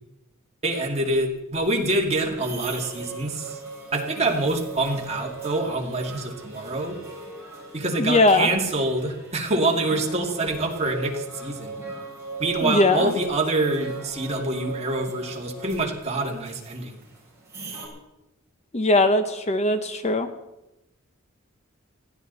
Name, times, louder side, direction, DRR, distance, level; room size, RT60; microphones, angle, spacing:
voice 1, 0.6-3.6 3.9-7.0 7.7-11.7 12.4-17.0, right 2 dB, 30° right, 0 dB, 2.5 m, -26 dB
sound 1, 1.6-17.9, right 4 dB, 15° right, 7.0 m, -39 dB
voice 2, 8.0-8.5 12.6-13.1 18.7-20.3, left 2 dB, 30° left, 9 dB, 0.9 m, -20 dB
20.5 x 15.5 x 4.1 m, 0.96 s
head